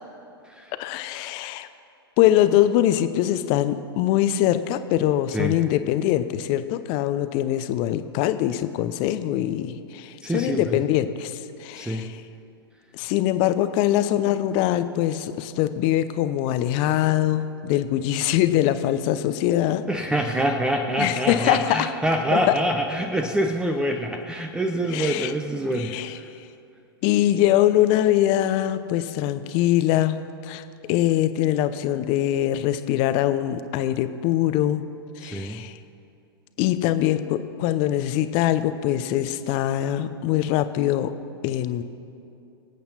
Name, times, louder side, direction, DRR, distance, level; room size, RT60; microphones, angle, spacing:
voice 1, 0.8-1.7 2.2-12.2 12.9-19.8 21.0-21.9 22.3-22.4 24.9-25.3 25.7-26.2 27.0-34.8 35.2-35.8 36.6-41.1 41.4-41.8, left 12 dB, 40° left, 11 dB, 0.8 m, -23 dB
voice 2, 10.2-10.8 11.8-12.1 19.9-26.3 35.2-35.6, right 1 dB, 5° right, 4 dB, 0.8 m, -26 dB
25.5 x 8.6 x 4.2 m, 2.6 s
figure-of-eight pair, 100°, 13 cm